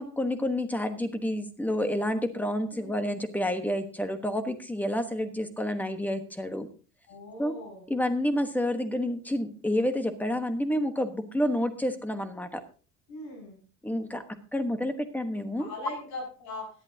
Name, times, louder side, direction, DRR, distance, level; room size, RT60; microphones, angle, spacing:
voice 1, 0.0-6.7 7.4-7.5 7.9-12.6 13.8-14.2 14.5-15.7, left 1 dB, 5° left, 9 dB, 1.1 m, -29 dB
voice 2, 7.1-7.8 13.1-13.6 15.6-16.7, left 2 dB, 75° left, 0 dB, 6.6 m, -40 dB
17.5 x 11.0 x 2.8 m, 0.38 s
cardioid pair, 145°, 30 cm